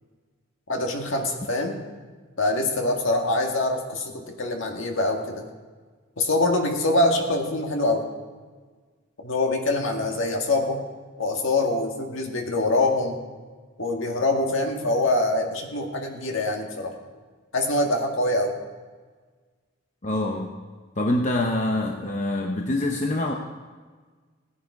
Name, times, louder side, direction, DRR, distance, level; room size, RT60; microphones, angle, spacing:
voice 1, 0.7-1.8 2.4-5.4 6.2-8.1 9.2-10.8 11.2-13.2 13.8-16.9 17.5-18.5, left 2 dB, 65° left, 2 dB, 1.9 m, -24 dB
voice 2, 20.0-20.6 21.0-23.3, left 1 dB, 35° left, 2 dB, 0.9 m, -25 dB
16.5 x 10.5 x 4.8 m, 1.5 s
head